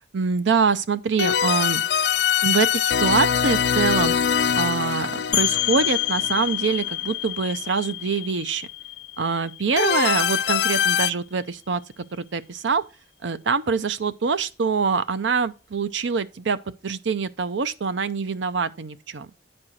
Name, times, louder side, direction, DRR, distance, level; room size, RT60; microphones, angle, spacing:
voice 1, 0.1-1.9 2.4-4.1 4.5-8.7 9.2-12.8 13.2-16.6 16.8-19.3, right 5 dB, 75° right, 0.6 m, -24 dB
sound 1, 1.2-7.1 9.8-11.1, left 8 dB, 60° left, 0.3 m, -23 dB
sound 2, 5.3-10.8, left 15 dB, 80° left, 0.8 m, -28 dB
9.9 x 4.4 x 6.3 m
head